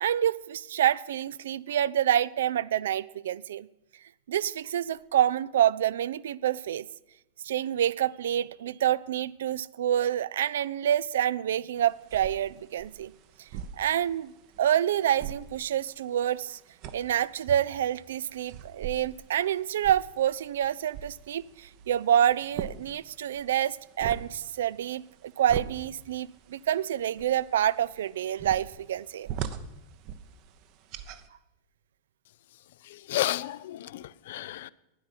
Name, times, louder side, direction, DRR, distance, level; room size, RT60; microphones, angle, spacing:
voice 1, 0.0-3.7 4.3-6.9 7.4-13.1 13.8-14.3 14.6-16.6 16.9-29.3, right 10 dB, 60° right, 0.4 m, -27 dB
sound 1, 11.8-31.3, right 8 dB, 45° right, 0.8 m, -43 dB
voice 2, 32.8-34.7, left 14 dB, 55° left, 0.4 m, -32 dB
12.0 x 10.0 x 5.8 m
figure-of-eight pair, 90°, 0 cm